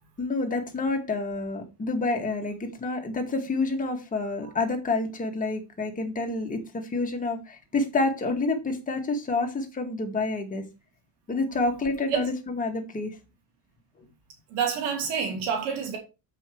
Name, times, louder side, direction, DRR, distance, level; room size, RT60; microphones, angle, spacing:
voice 1, 0.2-10.7 11.3-13.2, left 3 dB, 20° left, 2.0 m, -28 dB
voice 2, 14.5-16.0, right 7 dB, 80° right, 2.8 m, -28 dB
7.7 x 5.9 x 4.6 m
cardioid pair, 150°, 41 cm